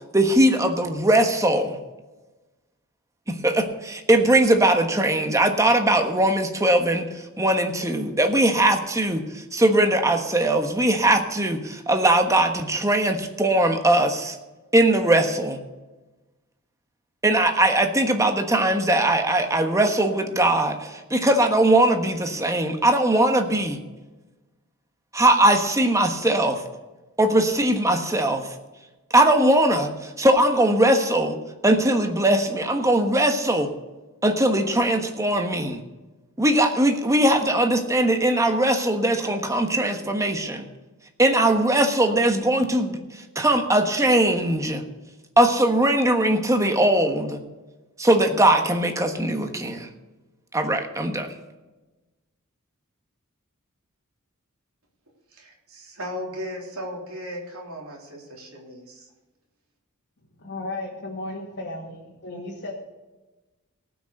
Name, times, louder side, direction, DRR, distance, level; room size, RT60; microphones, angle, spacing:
voice 1, 0.1-1.8 3.3-7.1 7.4-14.4 14.7-15.6 17.2-23.8 25.1-26.6 27.2-28.5 29.1-31.4 31.6-33.7 34.2-35.8 36.4-40.7 41.2-43.0 43.3-44.8 45.4-47.4 48.0-49.9 50.5-51.3, right 1 dB, 15° right, 5 dB, 1.3 m, -20 dB
voice 2, 55.3-59.1, equal, 70° right, -1 dB, 3.5 m, -36 dB
voice 3, 60.4-62.8, left 2 dB, 55° left, -4 dB, 2.2 m, -34 dB
18.0 x 6.3 x 6.5 m, 1.2 s
head